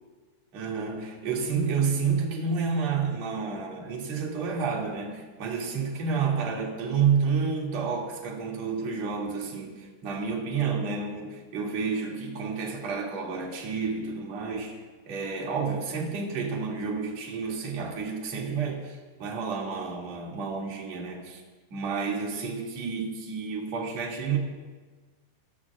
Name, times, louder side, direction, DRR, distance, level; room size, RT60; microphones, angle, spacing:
voice 1, 0.5-14.8 15.1-21.4 21.7-24.4, right 5 dB, 40° right, -2 dB, 3.0 m, -30 dB
27.5 x 17.0 x 2.5 m, 1.4 s
omnidirectional pair, 5.7 m